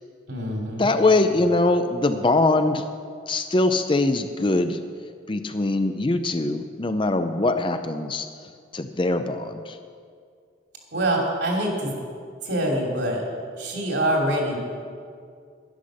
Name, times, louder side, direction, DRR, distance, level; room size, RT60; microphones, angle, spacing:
voice 1, 0.3-0.9 10.9-11.9 12.4-13.2 13.6-14.6, right 1 dB, 65° right, -1 dB, 3.0 m, -25 dB
voice 2, 0.8-2.8 3.3-4.8 5.3-8.3 8.7-9.8, left 2 dB, 25° left, 8 dB, 0.5 m, -22 dB
11.5 x 11.5 x 6.4 m, 2.2 s
head